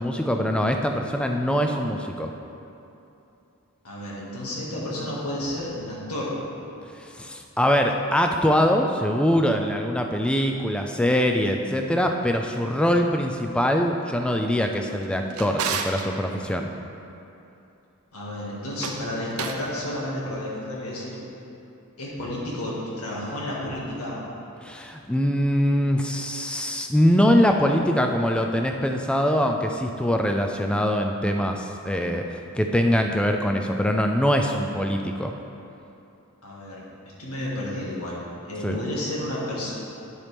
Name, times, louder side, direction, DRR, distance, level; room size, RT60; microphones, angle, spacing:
voice 1, 0.0-2.3 7.0-16.7 24.6-35.3 38.6-38.8, equal, 5° left, 3 dB, 0.4 m, -23 dB
voice 2, 3.8-6.3 18.1-21.2 22.0-24.2 36.4-36.8 37.2-39.7, left 1 dB, 85° left, -5 dB, 1.9 m, -31 dB
Drawer open or close, 14.9-16.1 18.6-19.7, right 5 dB, 80° right, 0.6 m, -32 dB
9.7 x 7.2 x 3.4 m, 2.8 s
head